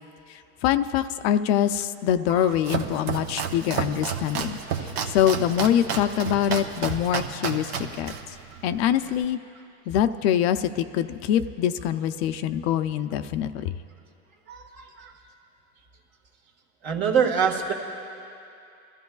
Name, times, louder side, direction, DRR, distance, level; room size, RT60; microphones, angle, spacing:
voice 1, 0.6-4.6 5.1-8.1 8.6-9.4 9.9-13.7, left 10 dB, 65° left, 10 dB, 0.6 m, -24 dB
Domestic sounds home sounds, 2.3-9.2, right 6 dB, 65° right, 1.1 m, -32 dB
voice 2, 14.5-15.1 16.8-17.7, right 6 dB, 45° right, 1 dB, 1.7 m, -25 dB
25.0 x 14.0 x 2.3 m, 2.6 s
supercardioid pair, 145°, 35 cm